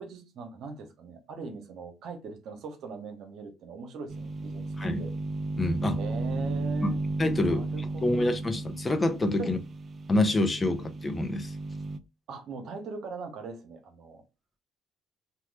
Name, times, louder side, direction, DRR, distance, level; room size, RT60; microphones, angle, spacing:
voice 1, 0.0-5.1 6.0-7.0 7.5-8.4 9.4-9.6 12.3-14.2, right 4 dB, 65° right, 0.8 m, -41 dB
sound 1, 4.1-12.0, right 2 dB, 40° right, 0.3 m, -34 dB
voice 2, 5.6-6.0 6.8-6.9 7.2-7.7 8.0-9.6 10.1-11.5, left 2 dB, 25° left, 0.6 m, -26 dB
2.9 x 2.2 x 3.2 m
supercardioid pair, 80°, 0 cm